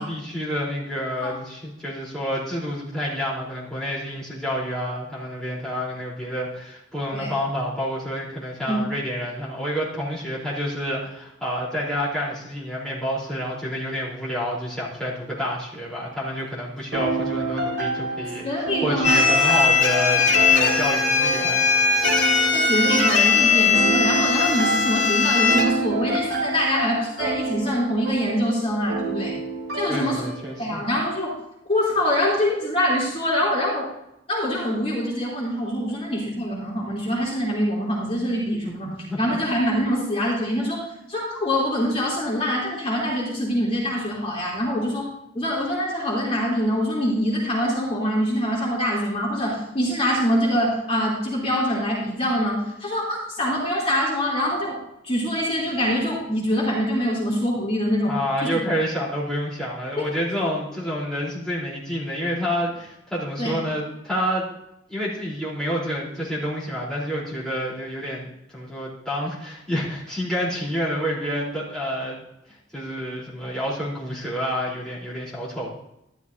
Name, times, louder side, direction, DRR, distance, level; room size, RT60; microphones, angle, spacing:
voice 1, 0.0-21.6 29.9-30.8 38.9-39.4 58.1-64.5 64.9-72.2 72.7-75.7, equal, 5° left, -8 dB, 3.7 m, -28 dB
sound 1, 16.9-30.6, right 3 dB, 65° right, 3.5 m, -29 dB
voice 2, 18.4-19.6 22.5-29.3 29.7-30.2 30.6-31.4 31.7-33.9 34.3-45.1 45.3-54.8 55.0-58.2 60.0-60.1 63.4-63.5, equal, 30° left, -5 dB, 3.3 m, -24 dB
sound 2, 19.0-25.6, left 5 dB, 65° left, 2.7 m, -19 dB
13.0 x 12.0 x 2.7 m, 0.83 s
head